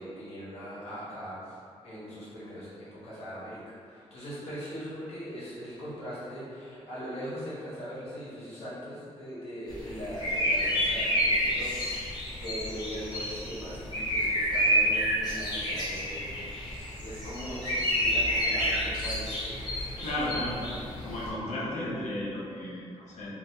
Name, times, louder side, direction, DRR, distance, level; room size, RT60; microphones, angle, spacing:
voice 1, 0.0-1.6 1.8-16.3 17.0-20.3, equal, 60° left, -9 dB, 1.2 m, -40 dB
sound 1, 9.7-21.3, equal, 35° left, 0.9 m, -29 dB
voice 2, 20.0-20.6 21.0-23.3, left 1 dB, 80° left, -6 dB, 0.8 m, -34 dB
3.5 x 2.6 x 2.8 m, 2.5 s
wide cardioid pair, 175°, 11 cm